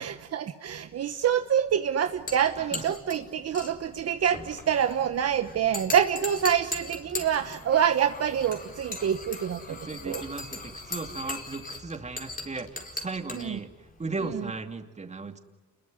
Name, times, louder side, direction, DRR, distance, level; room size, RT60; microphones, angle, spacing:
voice 1, 0.0-9.8 10.0-10.2 13.3-13.6 14.3-14.4, right 9 dB, 55° right, 9 dB, 1.2 m, -26 dB
sound 1, 2.1-14.5, left 3 dB, 30° left, 4.3 m, -40 dB
voice 2, 9.7-13.7 14.0-15.4, right 3 dB, 20° right, 6 dB, 2.6 m, -36 dB
28.5 x 21.5 x 9.7 m, 1.1 s
cardioid pair, 90°, 30 cm